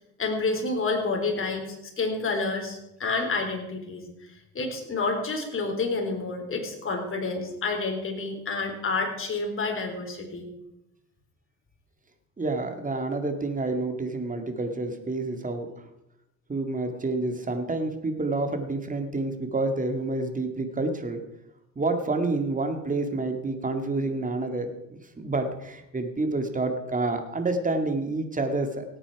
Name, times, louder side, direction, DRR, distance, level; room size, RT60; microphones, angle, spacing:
voice 1, 0.2-4.0 4.5-10.5, left 3 dB, 45° left, 2 dB, 3.9 m, -29 dB
voice 2, 12.4-15.7 16.5-21.2 21.8-24.7 25.2-28.9, right 2 dB, 25° right, 6 dB, 2.1 m, -28 dB
17.5 x 9.0 x 4.8 m, 0.88 s
cardioid pair, 90°, 30 cm